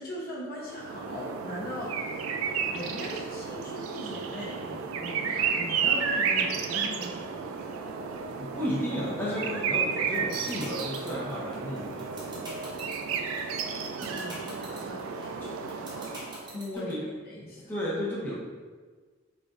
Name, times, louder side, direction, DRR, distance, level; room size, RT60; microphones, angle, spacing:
voice 1, 0.0-2.1 2.7-7.5 14.1-15.5 16.5-16.9 17.2-17.7, left 1 dB, 50° left, -4 dB, 0.8 m, -39 dB
sound 1, 0.6-16.6, right 6 dB, 85° right, 0.3 m, -32 dB
voice 2, 8.4-12.6 15.4-15.5 16.7-17.0 17.7-18.3, equal, 10° left, -7 dB, 0.8 m, -33 dB
sound 2, 9.9-16.9, right 1 dB, 20° right, 0.9 m, -43 dB
4.9 x 2.5 x 2.4 m, 1.5 s
head